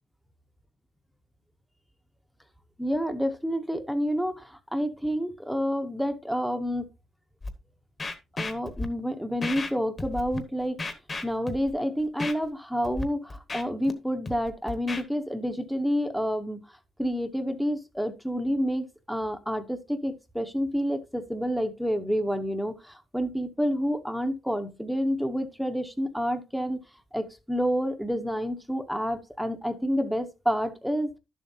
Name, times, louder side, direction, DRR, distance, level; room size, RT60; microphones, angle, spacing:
voice 1, 2.8-6.9 8.4-10.8 11.2-16.6 17.0-26.8 27.1-31.1, equal, ahead, 0.7 m, -29 dB
Scratching (performance technique), 7.4-7.5 8.0-8.9 9.4-9.7 10.0-10.4 10.8-11.7 12.2-12.3 12.8-13.0 13.3-13.9 14.3-15.0, left 2 dB, 25° left, 1.1 m, -33 dB
12.0 x 7.1 x 2.7 m
cardioid pair, 170°, 0 cm